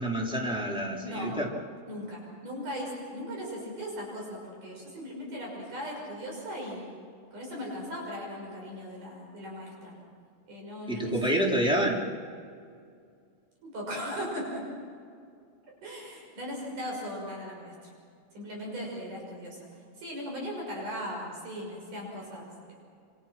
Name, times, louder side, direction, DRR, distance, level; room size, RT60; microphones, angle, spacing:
voice 1, 0.0-1.5 10.9-12.1, right 1 dB, ahead, -2 dB, 3.4 m, -28 dB
voice 2, 1.0-1.3 1.9-6.8 7.3-9.9 10.5-11.2 13.6-14.7 15.8-17.9 18.3-19.6 20.0-22.9, equal, 70° right, -1 dB, 7.8 m, -38 dB
28.0 x 27.5 x 6.0 m, 2.3 s
omnidirectional pair, 3.7 m